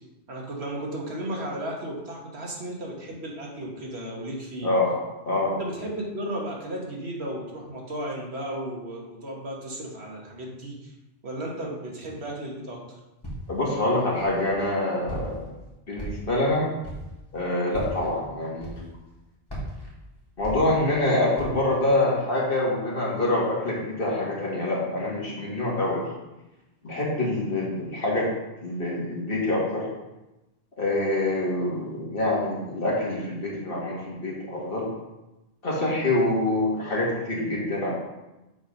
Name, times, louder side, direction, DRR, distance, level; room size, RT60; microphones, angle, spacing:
voice 1, 0.3-4.7 5.4-10.9 11.2-12.8, right 1 dB, 60° right, -2 dB, 1.7 m, -34 dB
voice 2, 4.6-4.9 5.3-5.6 13.5-15.4 15.9-16.6 17.3-18.8 20.4-26.0 26.8-28.3 28.6-29.9 30.8-34.9 35.6-37.9, left 2 dB, 50° left, -5 dB, 2.0 m, -25 dB
Walk footsteps, 13.2-13.7 14.2-14.7 15.1-15.5 15.9-16.5 16.8-17.2 17.7-18.1 18.6-19.1 19.5-21.0 21.3-21.7, equal, 20° left, 1.9 m, -37 dB
6.9 x 4.3 x 5.3 m, 1.0 s
omnidirectional pair, 1.2 m